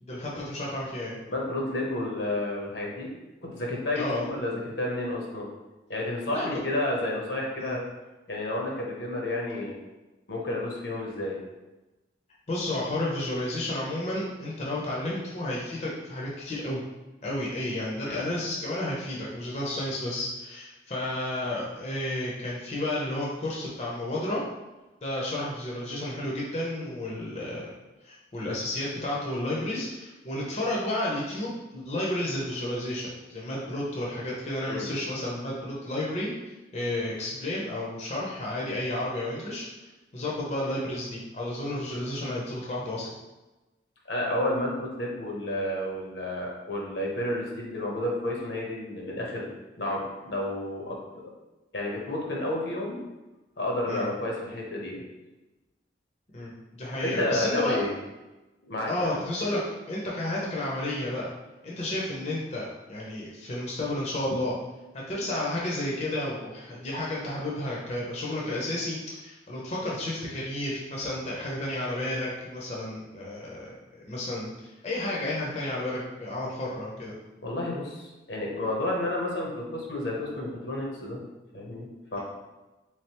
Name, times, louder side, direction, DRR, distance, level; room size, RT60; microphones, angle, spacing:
voice 1, 0.0-1.2 4.0-4.3 6.3-6.5 7.6-7.8 12.5-16.8 17.2-24.4 25.0-27.7 28.0-43.1 53.9-54.1 56.3-57.8 58.9-59.6 59.9-61.3 61.6-64.6 65.1-77.1, left 1 dB, 35° left, -4 dB, 0.6 m, -32 dB
voice 2, 1.3-3.1 3.4-5.5 5.9-7.8 8.3-9.7 10.3-11.4 18.0-18.2 34.7-34.9 44.1-49.5 49.8-51.0 51.7-53.0 53.6-55.0 56.9-57.9 58.7-59.1 59.4-59.6 77.4-81.2 81.5-82.2, left 1 dB, 75° left, -1 dB, 0.9 m, -31 dB
3.6 x 3.2 x 2.9 m, 1.1 s
head